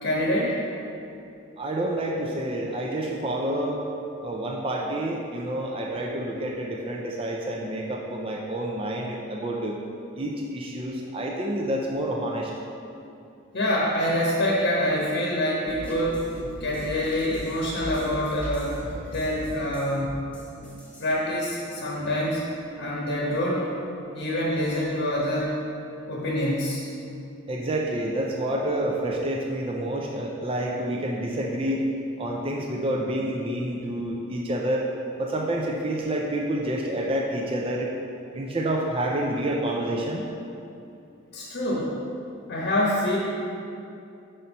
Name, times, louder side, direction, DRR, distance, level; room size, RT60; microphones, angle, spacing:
voice 1, 0.0-0.6 13.5-18.8 19.1-20.2 21.0-22.5 22.8-23.7 24.1-25.5 26.1-26.8 41.3-41.9 42.5-43.2, left 1 dB, 55° left, -5 dB, 0.9 m, -26 dB
voice 2, 1.6-3.8 4.2-9.8 10.1-12.5 27.5-31.8 32.2-34.9 35.2-37.9 38.3-40.3, right 1 dB, 25° right, -1 dB, 0.4 m, -28 dB
sound 1, 15.7-21.1, right 1 dB, 5° left, 0.8 m, -38 dB
5.2 x 4.3 x 5.4 m, 2.6 s
head